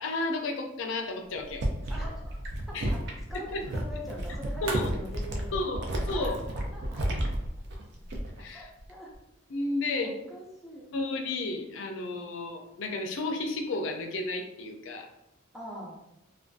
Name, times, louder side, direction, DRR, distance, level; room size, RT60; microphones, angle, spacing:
voice 1, 0.0-1.6 2.7-2.9 3.3-3.6 4.6-4.9 5.5-6.4 8.4-8.7 9.5-10.2 10.9-15.1, left 2 dB, 65° left, 4 dB, 0.4 m, -32 dB
sound 1, 1.4-8.5 8.8-9.2, right 1 dB, 55° right, 0.4 m, -32 dB
voice 2, 1.9-2.4 2.7-3.0 3.3-5.6 6.1-7.2 8.5-9.2 10.0-10.9 15.5-16.0, equal, ahead, -4 dB, 0.5 m, -43 dB
sound 2, 2.3-8.2, right 2 dB, 90° right, 0.7 m, -46 dB
2.5 x 2.2 x 2.4 m, 0.87 s
head